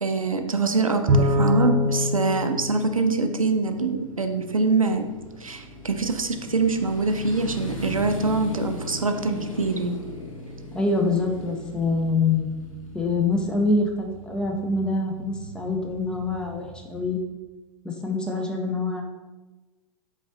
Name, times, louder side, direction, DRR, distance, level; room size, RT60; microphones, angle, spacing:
voice 1, 0.0-5.0 5.4-10.0, right 3 dB, 85° right, 6 dB, 0.5 m, -24 dB
Bowed string instrument, 1.1-3.7, left 1 dB, 35° right, 0.7 m, -23 dB
Motorcycle, 1.4-17.2, left 1 dB, 85° left, 1.0 m, -39 dB
voice 2, 10.7-12.5 12.9-17.2 17.8-19.0, left 3 dB, 5° left, 1 dB, 0.4 m, -25 dB
4.9 x 3.9 x 2.6 m, 1.2 s
figure-of-eight pair, 100°, 17 cm